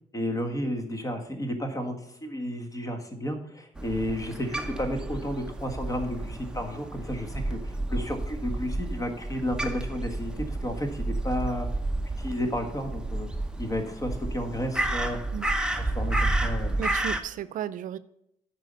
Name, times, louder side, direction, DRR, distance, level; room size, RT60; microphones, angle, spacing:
voice 1, 0.1-11.7 12.2-13.3 13.6-15.2 15.8-16.8, equal, 25° left, 5 dB, 1.5 m, -32 dB
Crow, 3.8-17.2, right 2 dB, 5° right, 0.8 m, -31 dB
voice 2, 16.8-18.0, right 10 dB, 85° right, 16 dB, 0.5 m, -34 dB
9.2 x 4.9 x 6.8 m, 0.76 s
cardioid pair, 125°, 13 cm